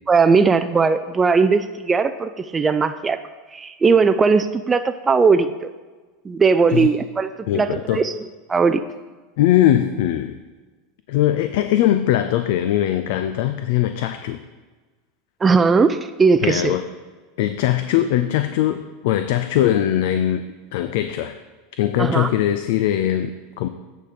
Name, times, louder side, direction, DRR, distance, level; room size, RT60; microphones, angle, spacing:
voice 1, 0.1-3.2 3.5-5.7 6.2-8.1 8.5-8.8 15.4-16.8 22.0-22.3, right 4 dB, 20° right, 10 dB, 0.4 m, -18 dB
voice 2, 7.5-8.0 9.4-10.4 11.1-14.4 16.4-16.8 17.4-20.4 20.7-21.4 21.8-23.7, left 12 dB, 70° left, 10 dB, 0.4 m, -20 dB
9.1 x 3.6 x 5.7 m, 1.3 s
hypercardioid pair, 100°, 0 cm